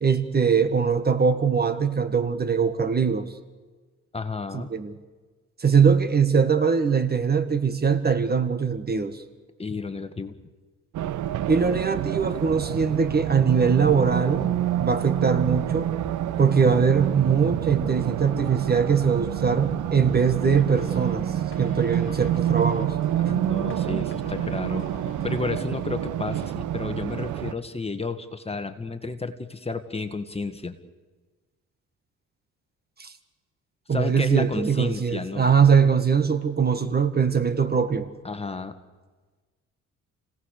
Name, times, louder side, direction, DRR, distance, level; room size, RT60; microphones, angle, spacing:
voice 1, 0.0-3.3 4.5-5.0 5.6-9.2 11.4-14.5 14.8-15.9 16.4-22.9 33.0-33.1 33.9-38.1, right 6 dB, 30° right, 10 dB, 1.7 m, -22 dB
voice 2, 4.1-4.7 9.6-10.4 23.2-24.9 25.2-30.8 33.9-35.5 38.2-38.7, left 3 dB, 20° left, 8 dB, 1.9 m, -32 dB
Race car auto racing, 10.9-27.5, right 11 dB, 75° right, 1.0 m, -28 dB
sound 1, 20.5-25.8, left 6 dB, 45° left, 1.9 m, -44 dB
30.0 x 18.0 x 6.7 m, 1.3 s
cardioid pair, 90°, 30 cm